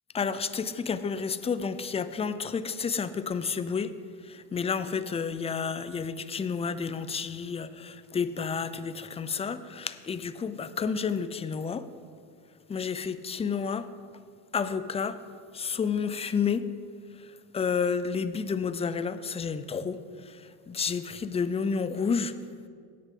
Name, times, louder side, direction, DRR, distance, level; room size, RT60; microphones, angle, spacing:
voice 1, 0.1-3.9 4.2-11.9 12.7-13.9 14.5-15.2 15.5-16.7 17.2-22.3, left 6 dB, 15° left, 12 dB, 0.4 m, -30 dB
17.5 x 6.6 x 3.7 m, 2.2 s
supercardioid pair, 85°, 46 cm